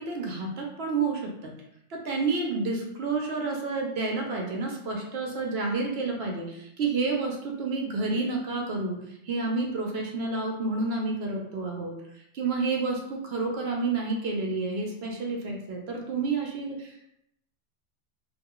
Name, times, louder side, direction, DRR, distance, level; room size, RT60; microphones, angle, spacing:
voice 1, 0.0-1.5 1.9-9.0 9.2-12.0 12.3-17.1, right 3 dB, 65° right, 0 dB, 0.8 m, -29 dB
2.4 x 2.1 x 3.7 m, 0.78 s
omnidirectional pair, 1.3 m